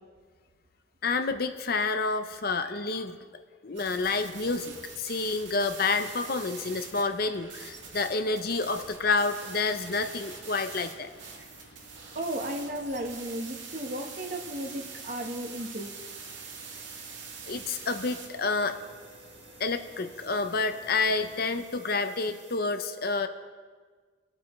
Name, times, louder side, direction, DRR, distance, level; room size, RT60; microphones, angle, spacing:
voice 1, 1.0-3.2 3.6-11.1 17.5-18.8 19.6-23.3, left 3 dB, 50° left, 8 dB, 0.7 m, -29 dB
sound 1, 3.7-22.6, right 5 dB, 70° right, 2.2 m, -45 dB
sound 2, 5.9-21.5, left 1 dB, 70° left, 1.8 m, -55 dB
voice 2, 12.1-15.9, right 1 dB, 45° right, 2 dB, 1.3 m, -34 dB
25.0 x 8.6 x 3.2 m, 1.5 s
head